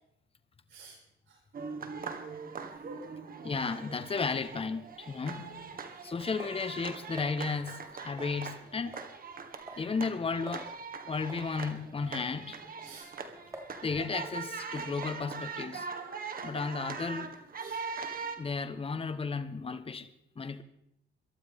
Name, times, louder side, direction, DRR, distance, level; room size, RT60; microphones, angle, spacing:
voice 1, 0.7-1.0 1.3-1.4 3.0-3.1 5.2-5.9 12.8-13.3 15.6-15.9 17.6-17.8, right 3 dB, 70° right, 6.4 m, -53 dB
sound 1, 1.5-18.4, right 5 dB, 45° right, 1.8 m, -41 dB
voice 2, 3.4-5.5 6.0-9.0 9.8-10.7 11.1-12.7 13.8-15.9 16.4-17.3 18.4-20.1 20.4-20.6, left 4 dB, 30° left, 1.2 m, -34 dB
sound 2, 5.1-7.3 8.2-8.6 8.9-9.2 9.4-9.9 10.2-10.3 10.5-10.7 11.3-11.5 12.1-12.3 12.8-13.8 14.2-14.4 15.0-15.3, right 1 dB, 15° right, 2.8 m, -48 dB
23.0 x 12.0 x 3.7 m
cardioid pair, 90°, 20 cm